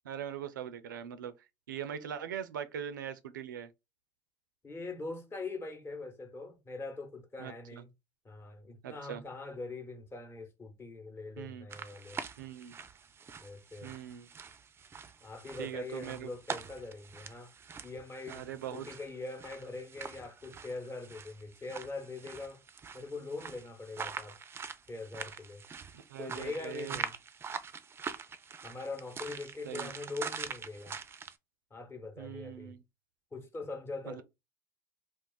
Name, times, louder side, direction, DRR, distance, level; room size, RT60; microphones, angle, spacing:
voice 1, 0.0-1.3 1.7-3.7 7.4-7.8 8.8-9.2 11.4-11.7 12.4-12.8 13.8-14.3 15.6-16.3 18.3-18.9 26.1-27.0 29.6-29.9 32.2-32.8 34.1-34.2, right 9 dB, 85° right, 0.4 m, -41 dB
voice 2, 4.6-7.9 8.2-12.2 13.4-13.9 15.2-17.5 17.8-22.6 22.9-24.4 24.9-25.6 26.2-27.1 28.6-31.0 31.7-32.7 33.3-34.2, left 3 dB, 25° left, 1.0 m, -42 dB
sound 1, 11.7-31.3, right 6 dB, 25° right, 0.4 m, -44 dB
2.4 x 2.3 x 3.7 m
hypercardioid pair, 80°, 10 cm